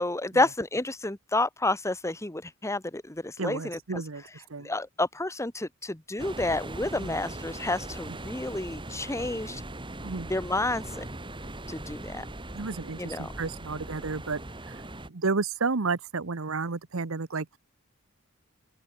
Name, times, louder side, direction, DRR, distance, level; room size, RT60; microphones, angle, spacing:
voice 1, 0.0-4.0 4.6-9.6 10.3-11.0 11.7-12.2 13.0-13.3, left 2 dB, 15° left, 1.3 m, -30 dB
voice 2, 3.4-4.2 4.5-4.7 7.0-7.2 8.1-8.2 10.0-10.3 12.5-14.4 14.7-14.8 15.1-17.5, right 4 dB, 75° right, 1.0 m, -31 dB
sound 1, 6.2-15.1, right 1 dB, 25° right, 2.8 m, -40 dB
open air
head